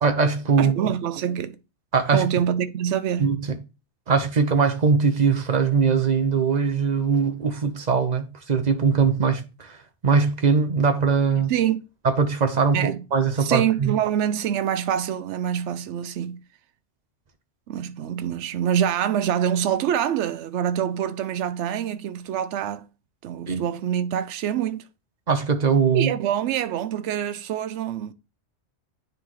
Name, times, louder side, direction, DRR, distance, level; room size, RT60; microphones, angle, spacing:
voice 1, 0.0-0.7 1.9-2.2 3.2-3.4 4.1-9.8 10.0-11.5 12.0-14.0 23.5-23.6 25.3-26.1, right 5 dB, 40° right, 0.8 m, -21 dB
voice 2, 0.6-1.6 2.1-3.4 11.5-11.8 12.7-13.0 13.4-16.4 17.7-22.9 23.2-24.8 25.9-28.1, right 9 dB, 80° right, 0.9 m, -25 dB
9.6 x 3.9 x 3.1 m
omnidirectional pair, 1.2 m